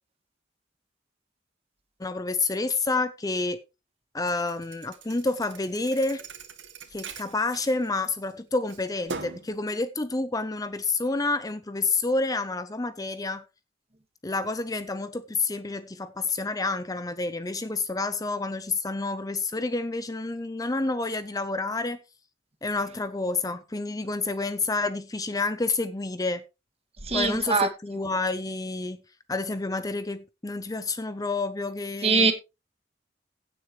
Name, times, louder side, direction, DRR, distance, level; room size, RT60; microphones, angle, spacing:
voice 1, 2.0-3.6 4.1-6.2 6.9-13.4 14.2-22.0 22.6-26.4 27.1-29.0 29.3-32.3, left 3 dB, 20° left, 0.6 m, -29 dB
Thump thud, 4.3-8.3 8.7-9.5, right 4 dB, 85° right, 2.1 m, -41 dB
voice 2, 27.0-27.7 32.0-32.3, right 4 dB, 35° right, 2.0 m, -22 dB
16.0 x 7.9 x 3.1 m
head